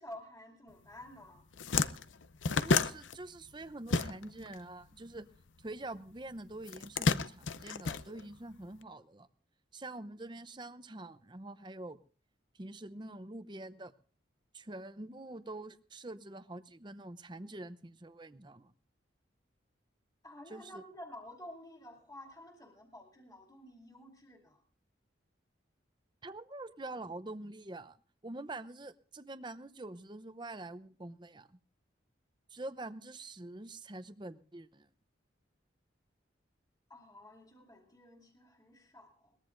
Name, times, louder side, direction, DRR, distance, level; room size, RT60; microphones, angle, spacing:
voice 1, 0.0-1.5 20.2-24.6 36.9-39.4, left 1 dB, 20° left, 1 dB, 2.6 m, -51 dB
sound 1, 1.0-1.1 1.4-4.5 4.8-6.0 6.6-8.7, left 4 dB, 80° left, 0.7 m, -31 dB
voice 2, 2.6-5.3 5.6-9.3 9.7-12.0 12.5-13.9 14.5-18.7 20.5-20.8 26.2-28.0 28.2-31.6 32.5-34.9, right 2 dB, 25° right, 13 dB, 0.7 m, -45 dB
22.0 x 20.0 x 2.6 m, 0.44 s
head